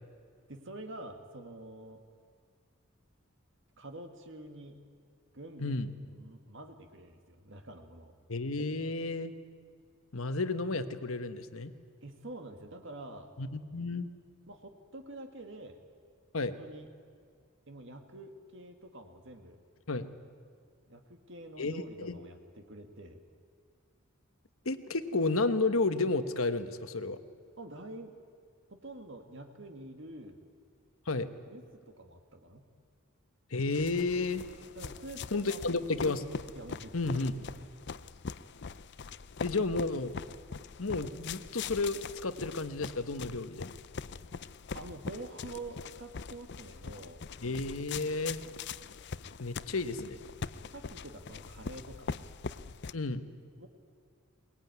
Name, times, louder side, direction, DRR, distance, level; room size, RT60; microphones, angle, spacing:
voice 1, 0.5-2.0 3.8-4.8 5.3-5.7 6.0-8.1 12.0-13.3 14.5-15.8 16.4-16.9 17.7-19.6 20.9-23.2 27.6-28.1 28.7-30.4 31.5-32.6 34.8-35.8 36.6-37.7 44.7-47.2 50.6-52.2 53.6-53.7, right 2 dB, 60° right, 5 dB, 1.8 m, -47 dB
voice 2, 5.6-5.9 8.3-9.3 10.1-11.7 13.4-14.1 16.3-16.6 19.9-20.1 21.6-22.2 24.6-27.2 31.1-31.3 33.5-34.4 35.3-36.2 36.9-37.3 39.4-40.1 40.8-43.8 47.4-48.4 49.4-50.2 52.9-53.2, left 3 dB, 75° left, 11 dB, 1.2 m, -32 dB
sound 1, 33.7-52.9, left 5 dB, 55° left, 0.5 m, -42 dB
22.0 x 20.0 x 9.5 m, 2.1 s
head